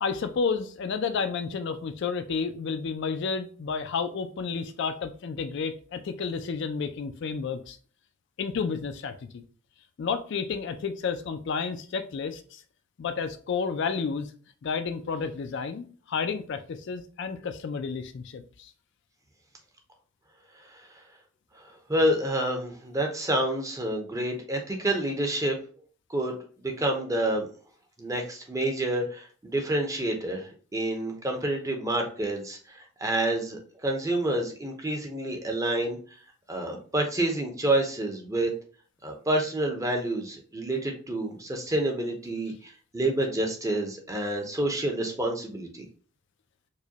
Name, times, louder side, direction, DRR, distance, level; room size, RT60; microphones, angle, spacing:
voice 1, 0.0-7.8 8.4-9.4 10.0-12.6 13.0-14.3 14.6-18.7, left 5 dB, 55° left, 9 dB, 0.3 m, -31 dB
voice 2, 21.9-25.6 26.1-27.5 28.0-36.0 36.5-38.5 39.0-45.9, right 1 dB, 15° right, 2 dB, 0.6 m, -28 dB
4.8 x 2.2 x 2.7 m, 0.41 s
head